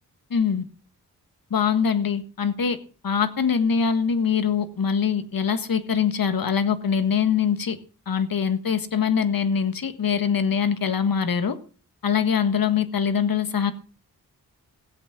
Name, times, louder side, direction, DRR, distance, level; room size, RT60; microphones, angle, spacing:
voice 1, 0.3-0.6 1.5-2.8 3.0-7.8 8.1-11.6 12.0-13.7, left 7 dB, 65° left, 11 dB, 1.6 m, -23 dB
16.5 x 8.3 x 6.0 m, 0.39 s
cardioid pair, 70°, 37 cm